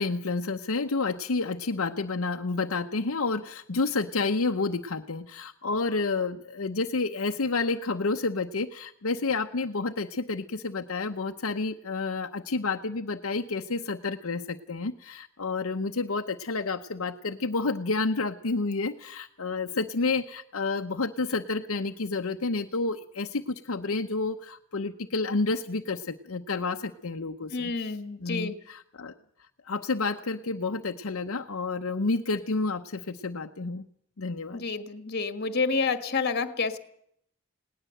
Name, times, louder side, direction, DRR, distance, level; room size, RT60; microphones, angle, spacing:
voice 1, 0.0-27.7 28.2-29.1 29.7-33.8 34.2-34.6, left 3 dB, 75° left, 5 dB, 0.8 m, -30 dB
voice 2, 27.5-28.6 34.5-36.8, left 4 dB, 50° left, 10 dB, 1.7 m, -29 dB
19.5 x 18.5 x 7.8 m, 0.70 s
head